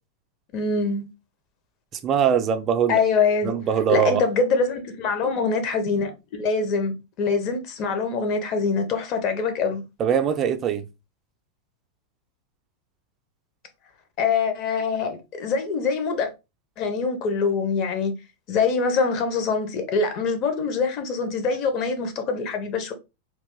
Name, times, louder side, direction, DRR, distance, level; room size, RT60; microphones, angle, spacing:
voice 1, 0.5-1.1 2.9-3.6 3.9-9.8 14.2-16.3 16.8-18.1 18.5-22.9, left 4 dB, 40° left, 0.8 m, -24 dB
voice 2, 2.0-3.0 3.4-4.2 10.0-10.8, right 8 dB, 30° right, 0.5 m, -22 dB
3.0 x 2.5 x 3.6 m
figure-of-eight pair, 90°, 0 cm